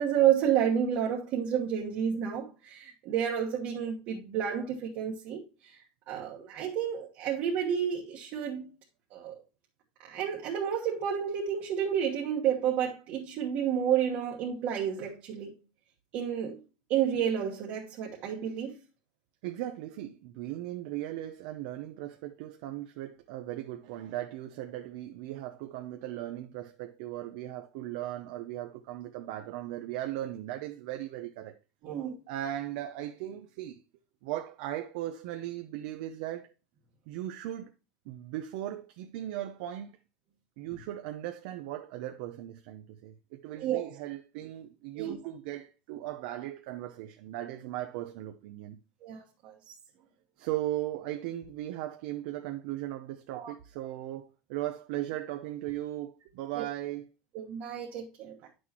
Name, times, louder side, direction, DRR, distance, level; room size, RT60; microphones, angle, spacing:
voice 1, 0.0-5.8 6.1-8.7 9.1-9.4 10.1-15.5 16.1-16.6 16.9-18.7 31.8-32.2 43.6-43.9 44.9-45.2 49.0-49.5 53.3-53.5 56.6-56.7 57.3-58.4, right 9 dB, 50° right, 1.4 m, -30 dB
voice 2, 19.4-31.6 32.3-33.8 34.2-36.5 37.1-37.7 38.1-40.0 40.6-48.8 50.4-57.1, right 13 dB, 70° right, 0.7 m, -38 dB
9.3 x 6.3 x 2.9 m
supercardioid pair, 145°, 4 cm